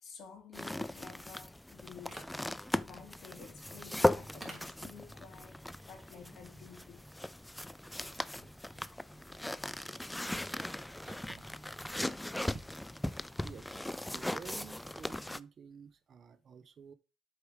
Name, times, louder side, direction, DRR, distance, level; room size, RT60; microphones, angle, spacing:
voice 1, 0.0-2.2 2.8-7.1, left 6 dB, 60° left, 3.0 m, -52 dB
sound 1, 0.5-15.4, left 1 dB, 5° left, 0.4 m, -38 dB
sound 2, 2.1-16.0, right 2 dB, 15° right, 3.3 m, -59 dB
sound 3, 4.5-9.8, left 3 dB, 25° left, 3.6 m, -70 dB
voice 2, 13.4-13.8 14.1-16.9, right 6 dB, 45° right, 0.9 m, -51 dB
7.8 x 4.9 x 4.9 m
cardioid pair, 90°, 0 cm